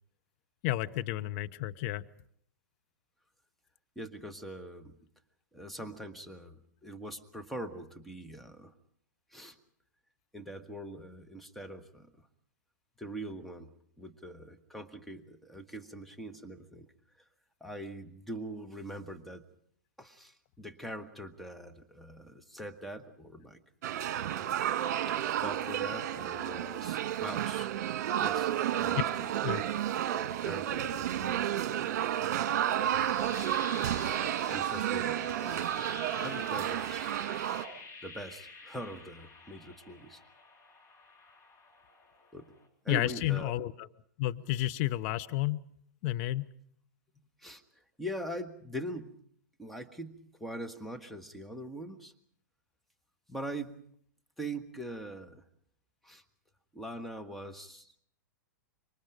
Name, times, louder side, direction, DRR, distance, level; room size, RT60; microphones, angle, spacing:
voice 1, 0.6-2.0 29.4-29.6 42.9-43.9 44.2-45.6 46.0-46.5, left 15 dB, 45° left, 12 dB, 0.9 m, -31 dB
voice 2, 3.9-5.0 5.5-8.7 9.3-9.6 10.3-12.3 13.0-16.9 17.6-19.4 20.0-23.6 25.1-27.7 28.2-28.5 28.8-29.1 30.1-32.1 34.5-35.7 36.2-37.1 38.0-40.2 42.3-42.5 42.8-43.5 47.4-47.6 48.0-49.2 49.6-52.1 53.3-53.7 54.4-55.4 56.0-56.2 56.7-58.0, right 1 dB, ahead, 4 dB, 1.6 m, -42 dB
sound 1, 23.8-37.6, right 11 dB, 55° right, 1.7 m, -31 dB
sound 2, 32.6-42.7, left 3 dB, 25° left, 3.9 m, -49 dB
26.5 x 24.0 x 5.1 m, 0.64 s
figure-of-eight pair, 105°, 10 cm